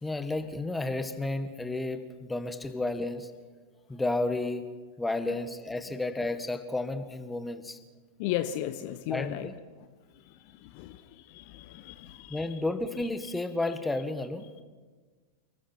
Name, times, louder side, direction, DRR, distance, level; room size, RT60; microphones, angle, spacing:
voice 1, 0.0-3.3 3.9-4.7 5.0-7.8 9.1-9.6 12.3-14.5, left 2 dB, 10° left, 10 dB, 1.6 m, -32 dB
voice 2, 8.2-9.5 10.6-11.0 11.3-12.4, left 12 dB, 45° left, 11 dB, 0.9 m, -35 dB
30.0 x 20.0 x 4.6 m, 1.4 s
figure-of-eight pair, 90°, 0 cm